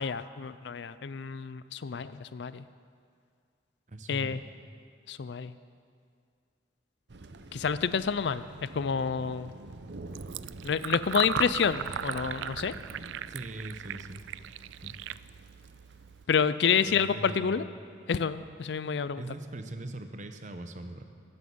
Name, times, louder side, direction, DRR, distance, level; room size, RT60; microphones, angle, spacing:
voice 1, 0.0-2.6 4.1-4.4 5.1-5.5 7.5-9.5 10.6-12.7 16.3-17.7 18.1-19.2, left 6 dB, 70° left, 14 dB, 0.4 m, -29 dB
voice 2, 3.9-4.4 13.3-14.2 14.8-15.0 16.8-17.6 19.2-21.0, right 1 dB, 40° right, 7 dB, 0.9 m, -40 dB
Thunder, 7.1-16.8, right 2 dB, 70° right, 0.7 m, -48 dB
Fill (with liquid), 10.1-16.2, right 9 dB, 85° right, 0.3 m, -37 dB
16.0 x 8.7 x 7.0 m, 2.2 s
head